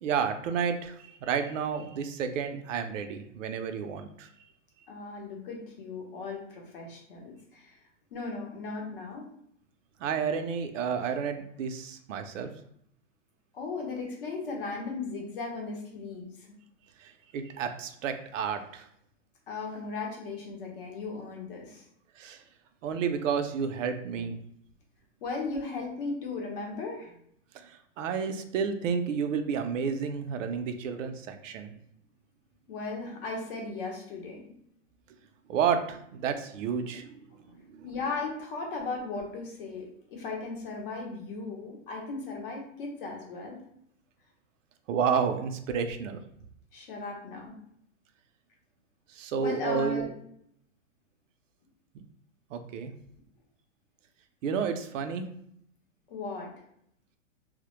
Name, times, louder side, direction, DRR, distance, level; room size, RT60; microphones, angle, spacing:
voice 1, 0.0-4.3 10.0-12.5 17.0-18.9 22.2-22.4 22.8-24.4 27.5-31.7 35.5-37.1 37.7-37.8 44.9-46.2 49.1-50.0 51.9-52.0 52.5-52.9 54.4-55.3, right 6 dB, 75° right, 7 dB, 0.5 m, -31 dB
voice 2, 4.9-7.8 8.1-9.3 13.5-16.6 19.5-21.9 24.1-24.3 25.2-27.2 32.7-34.4 37.3-43.6 46.7-47.5 49.4-50.1 56.1-56.5, left 3 dB, 45° left, 0 dB, 0.7 m, -37 dB
2.1 x 2.1 x 2.9 m, 0.70 s
hypercardioid pair, 165°, 38 cm